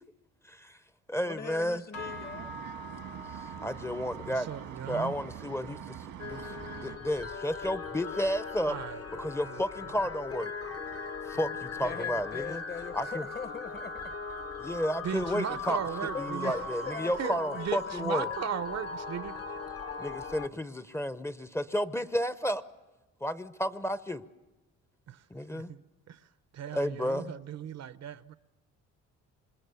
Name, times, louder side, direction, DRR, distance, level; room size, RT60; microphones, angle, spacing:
voice 1, 0.5-0.8 1.1-1.8 3.3-4.5 4.9-6.0 6.2-8.8 9.2-10.5 11.3-12.6 12.9-13.2 14.6-15.8 16.2-18.3 20.0-22.6 23.2-24.2 25.3-25.7 26.7-27.3, equal, 10° left, 0.7 m, -32 dB
voice 2, 1.3-2.5 11.8-14.1 16.0-18.5, left 6 dB, 35° left, 1.0 m, -41 dB
sound 1, 1.9-11.5 11.8-12.2 12.6-12.9 13.5-13.6, equal, 70° left, 1.9 m, -49 dB
sound 2, 1.9-7.0, right 9 dB, 90° right, 1.8 m, -44 dB
voice 3, 4.2-5.2 8.7-9.6 15.0-16.6 17.2-19.4 25.1-25.3 25.5-26.3 26.5-28.3, right 9 dB, 60° right, 0.7 m, -37 dB
sound 3, 6.2-20.5, left 4 dB, 50° left, 1.1 m, -39 dB
26.0 x 21.5 x 6.9 m
cardioid pair, 90°, 30 cm